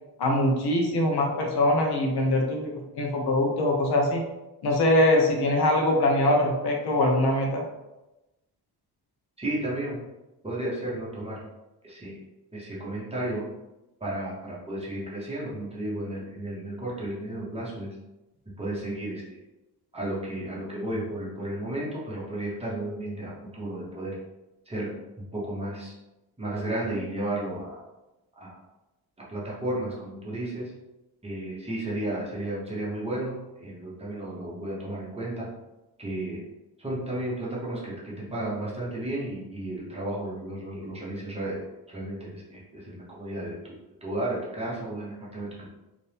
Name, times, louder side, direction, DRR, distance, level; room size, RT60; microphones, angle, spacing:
voice 1, 0.2-4.2 4.6-7.6, left 1 dB, 75° left, 1 dB, 1.0 m, -23 dB
voice 2, 9.4-10.0 10.4-11.4 11.8-12.2 12.5-13.5 14.0-17.9 18.6-19.2 19.9-24.2 24.7-24.9 25.3-25.9 26.4-27.8 28.4-28.6 29.3-30.7 31.2-35.5 36.0-36.4 36.8-45.7, right 1 dB, 15° right, -6 dB, 1.0 m, -33 dB
4.2 x 3.0 x 3.4 m, 0.99 s
wide cardioid pair, 175°, 39 cm